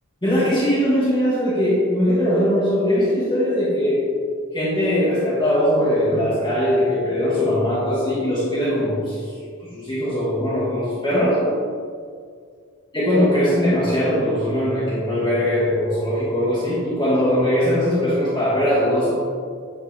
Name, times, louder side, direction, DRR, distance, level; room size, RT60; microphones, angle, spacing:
voice 1, 0.2-4.1 4.5-9.1 9.7-11.6 12.9-19.1, equal, 20° left, -10 dB, 1.4 m, -20 dB
9.3 x 3.9 x 3.7 m, 2.1 s
head